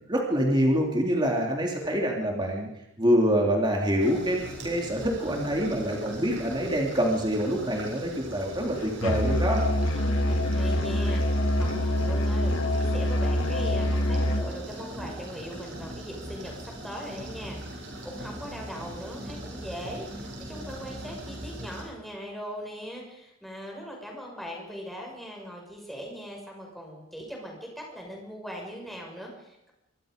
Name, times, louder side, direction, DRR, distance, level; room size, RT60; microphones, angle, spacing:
voice 1, 0.1-2.7 3.0-9.6, equal, 20° right, 0 dB, 3.2 m, -26 dB
sound 1, 4.0-21.8, right 1 dB, 55° right, 7.2 m, -40 dB
Musical instrument, 9.0-14.5, left 1 dB, 75° left, 2.5 m, -25 dB
voice 2, 9.9-29.7, equal, ahead, -1 dB, 6.2 m, -40 dB
25.5 x 23.5 x 5.3 m, 0.85 s
head